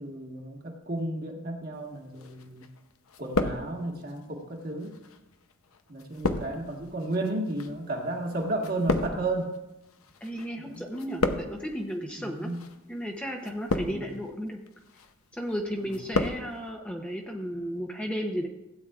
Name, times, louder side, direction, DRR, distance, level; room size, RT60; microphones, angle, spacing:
voice 1, 0.0-2.6 3.2-5.0 5.9-9.5 10.6-10.8 11.3-11.4 12.2-12.6 13.8-14.1 15.8-16.0, right 2 dB, 45° right, 1 dB, 1.5 m, -33 dB
sound 1, 2.2-2.8 3.1-4.1 4.8-10.5 10.7-11.8 12.5-12.8 13.4-14.2 14.7-15.1 15.5-16.4 16.7-16.8, left 2 dB, 80° left, 0.8 m, -32 dB
voice 2, 10.2-12.5 12.9-14.6 15.3-18.5, equal, 5° left, 1 dB, 0.8 m, -34 dB
16.0 x 9.0 x 2.4 m, 0.97 s
head